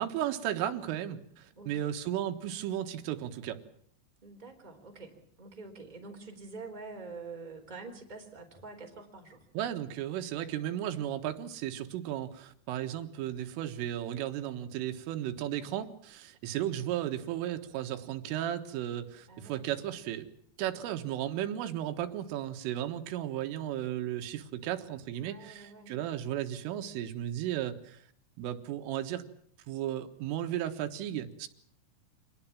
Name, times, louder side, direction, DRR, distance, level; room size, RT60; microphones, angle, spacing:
voice 1, 0.0-3.6 9.6-20.3 20.6-28.0 28.4-29.3 29.7-31.5, right 11 dB, 90° right, 7 dB, 4.1 m, -35 dB
voice 2, 1.5-1.9 4.2-9.5 19.3-19.7 25.1-26.0, right 3 dB, 10° right, 2 dB, 3.3 m, -46 dB
26.5 x 19.0 x 7.4 m, 0.64 s
omnidirectional pair, 5.6 m